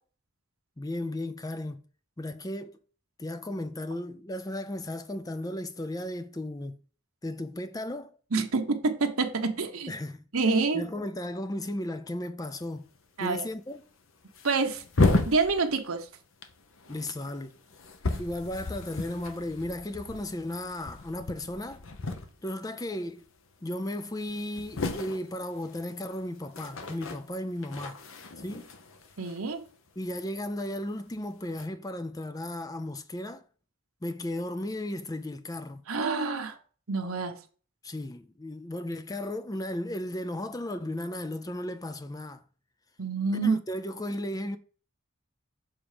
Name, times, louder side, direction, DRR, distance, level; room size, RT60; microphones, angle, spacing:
voice 1, 0.8-1.8 2.2-2.8 3.2-6.8 7.2-8.1 9.9-10.3 10.7-12.9 13.2-13.8 16.9-17.6 18.2-21.8 22.4-23.2 23.6-28.0 28.4-28.7 30.0-33.4 34.0-35.8 37.8-42.4 43.3-44.6, left 1 dB, 15° left, 0.5 m, -35 dB
voice 2, 8.3-9.9 10.3-10.8 13.2-13.4 14.4-14.8 15.2-16.1 29.2-29.6 35.9-36.5 36.9-37.3 43.0-43.6, right 4 dB, 80° right, 1.1 m, -27 dB
sound 1, 12.5-12.7 13.0-13.1 13.8-13.9 14.2-16.1 16.4-22.7 22.9-23.3 23.7-23.8 24.0-30.3 31.1-31.7, left 2 dB, 70° left, 0.9 m, -33 dB
7.0 x 3.7 x 5.0 m
head